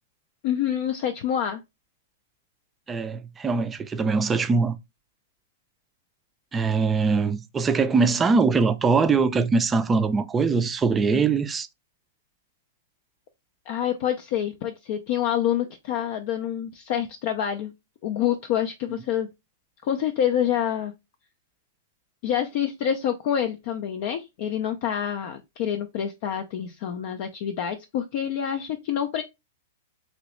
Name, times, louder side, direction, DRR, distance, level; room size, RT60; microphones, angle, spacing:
voice 1, 0.4-1.6 13.7-17.7 18.0-19.3 19.8-20.9 22.2-29.2, left 9 dB, 50° left, 0.4 m, -27 dB
voice 2, 2.9-4.8 6.5-11.7, right 4 dB, 15° right, 0.4 m, -22 dB
3.0 x 2.9 x 3.0 m
hypercardioid pair, 115°, 0 cm